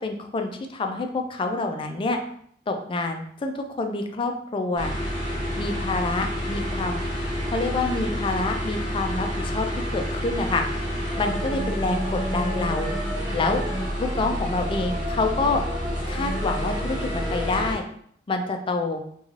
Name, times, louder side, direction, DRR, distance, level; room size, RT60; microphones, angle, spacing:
voice 1, 0.0-2.2 2.7-4.9 5.6-7.0 7.5-9.7 9.9-10.6 11.2-12.9 13.3-13.6 14.0-15.6 16.1-17.8 18.3-19.0, left 3 dB, 30° left, 5 dB, 0.3 m, -27 dB
sound 1, 4.8-17.8, equal, 25° right, 1.1 m, -28 dB
3.1 x 2.3 x 2.4 m, 0.64 s
head